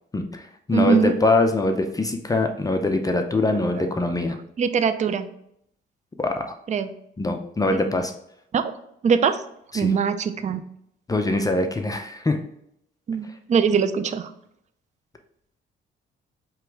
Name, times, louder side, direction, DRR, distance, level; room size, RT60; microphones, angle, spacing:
voice 1, 0.1-0.4 0.7-4.4 6.2-6.4 7.2-8.1 9.7-9.9 11.1-12.4, left 2 dB, 20° left, 5 dB, 0.5 m, -23 dB
voice 2, 0.7-1.1 4.6-5.3 6.7-6.9 7.7-7.8 8.5-8.6 9.0-9.4 9.7-10.6 13.1-14.3, right 6 dB, 35° right, 11 dB, 0.4 m, -21 dB
4.6 x 3.0 x 3.5 m, 0.74 s
cardioid pair, 90°, 20 cm